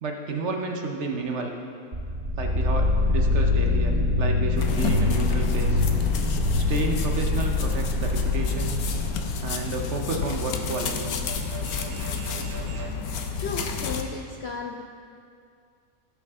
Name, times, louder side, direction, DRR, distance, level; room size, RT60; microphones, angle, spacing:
voice 1, 0.0-1.5 2.4-5.9 6.5-8.8 9.4-11.1, right 3 dB, 55° right, 3 dB, 1.1 m, -31 dB
sound 1, 1.9-9.7, left 2 dB, 40° right, 2.8 m, -24 dB
sound 2, 4.6-14.0, left 5 dB, 90° left, 1.2 m, -30 dB
sound 3, 8.3-13.0, right 2 dB, 85° right, 1.8 m, -43 dB
voice 2, 13.4-14.8, left 4 dB, 65° left, 3 dB, 0.6 m, -34 dB
17.0 x 5.9 x 3.6 m, 2.3 s
omnidirectional pair, 1.5 m